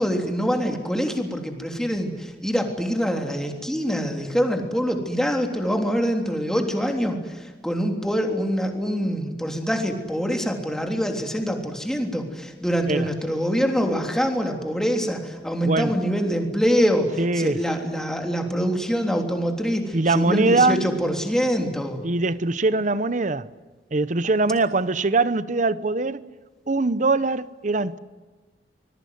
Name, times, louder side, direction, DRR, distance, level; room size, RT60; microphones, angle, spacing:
voice 1, 0.0-17.1 17.4-22.0, equal, 5° left, 3.4 m, -25 dB
voice 2, 17.2-17.6 19.9-21.0 22.0-23.5 23.9-26.3 26.7-28.0, right 3 dB, 45° right, 0.9 m, -22 dB
26.0 x 21.0 x 9.5 m
head